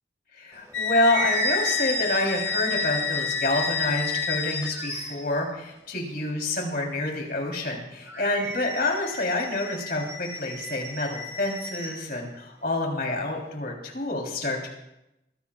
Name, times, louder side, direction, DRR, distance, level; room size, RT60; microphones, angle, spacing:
voice 1, 0.3-14.7, left 2 dB, 55° left, 0 dB, 3.6 m, -28 dB
sound 1, 0.6-5.4 8.1-12.1, equal, 15° right, 2.2 m, -33 dB
sound 2, 0.7-5.2, left 8 dB, 85° left, 0.5 m, -30 dB
23.0 x 16.5 x 2.4 m, 0.88 s
head